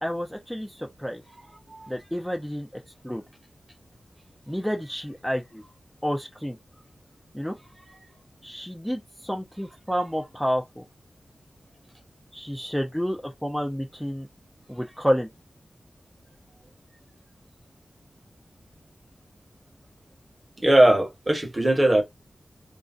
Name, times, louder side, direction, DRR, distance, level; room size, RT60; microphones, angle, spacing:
voice 1, 0.0-1.2 1.9-2.7 3.0-3.2 4.5-5.6 6.0-6.6 7.3-7.5 8.4-10.8 12.3-14.3 14.7-15.3, equal, 5° left, 0.6 m, -29 dB
voice 2, 20.6-22.0, right 1 dB, 30° right, 1.1 m, -19 dB
3.0 x 2.6 x 2.4 m
wide cardioid pair, 75°, 0 cm